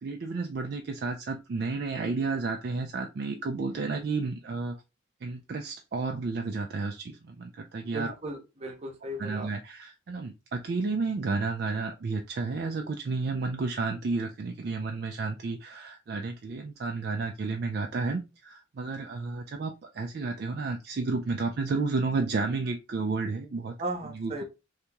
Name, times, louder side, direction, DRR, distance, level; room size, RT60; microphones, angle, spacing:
voice 1, 0.0-4.8 5.2-8.2 9.2-23.7 24.0-24.3, right 3 dB, 50° right, 4 dB, 0.4 m, -31 dB
voice 2, 7.9-9.5 23.8-24.4, right 1 dB, 30° right, 3 dB, 0.8 m, -36 dB
2.9 x 2.8 x 3.4 m, 0.27 s
head